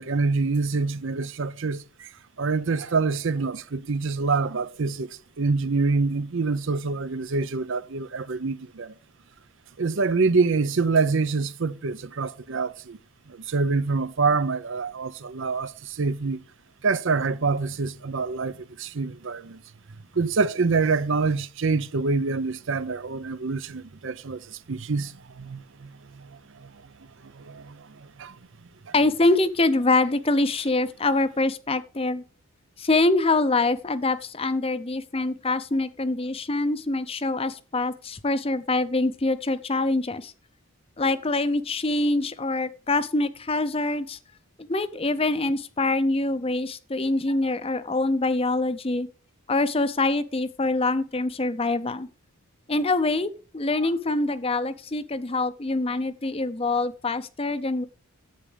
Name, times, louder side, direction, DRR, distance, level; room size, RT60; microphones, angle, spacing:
voice 1, 0.0-2.1 2.4-8.9 9.8-13.0 13.3-16.4 16.8-19.6 20.1-26.9 27.2-28.4 28.9-29.0, right 4 dB, 55° right, 0.6 m, -26 dB
voice 2, 28.9-32.2 32.8-40.3 41.0-44.2 44.6-49.1 49.5-52.1 52.7-57.8, left 2 dB, 25° left, 0.6 m, -25 dB
10.5 x 8.2 x 5.2 m
head